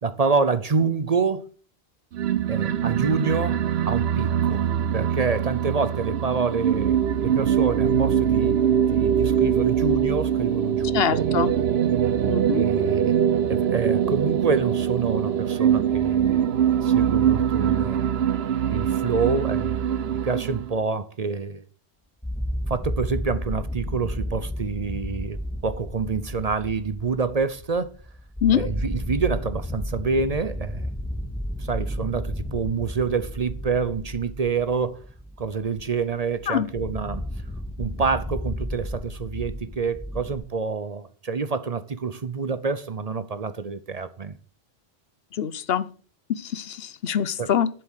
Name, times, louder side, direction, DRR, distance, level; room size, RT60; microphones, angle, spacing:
voice 1, 0.0-1.5 2.5-4.7 4.9-11.3 12.5-13.2 13.5-16.4 16.8-18.0 18.7-21.6 22.7-27.9 28.5-30.9 31.6-35.0 35.4-37.2 37.8-44.4 47.4-47.5, right 5 dB, 45° right, 0.7 m, -27 dB
sound 1, 2.1-20.7, right 9 dB, 80° right, 1.0 m, -23 dB
voice 2, 10.9-11.5 12.3-12.7 28.4-28.7 36.5-36.7 45.4-45.9 46.3-47.7, left 9 dB, 75° left, 0.9 m, -24 dB
sound 2, 22.2-40.4, equal, 5° left, 3.0 m, -33 dB
11.0 x 7.6 x 6.4 m
omnidirectional pair, 1.0 m